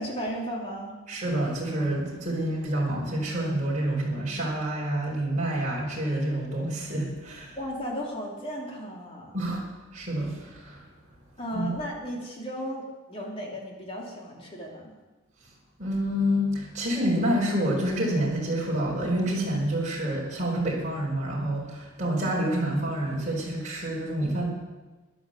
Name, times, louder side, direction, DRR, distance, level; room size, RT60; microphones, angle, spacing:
voice 1, 0.0-0.9 7.6-9.4 11.4-14.9, equal, 25° left, -2 dB, 3.3 m, -35 dB
voice 2, 1.1-7.5 9.3-9.6 9.9-10.8 11.5-11.7 15.8-24.5, right 1 dB, 35° right, -3 dB, 4.8 m, -28 dB
15.0 x 11.0 x 7.8 m, 1.2 s
head